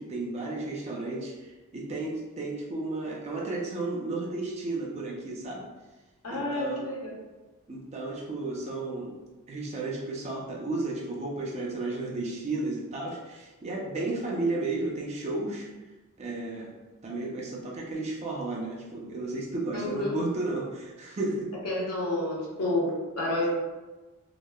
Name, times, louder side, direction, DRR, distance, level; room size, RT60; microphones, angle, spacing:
voice 1, 0.0-5.6 6.3-6.8 7.7-9.2 9.5-15.7 16.2-16.7 17.0-21.5, right 2 dB, 30° right, -2 dB, 0.4 m, -33 dB
voice 2, 6.2-7.1 19.7-20.2 21.6-23.5, left 1 dB, 85° left, -4 dB, 0.8 m, -29 dB
2.8 x 2.0 x 2.2 m, 1.2 s
head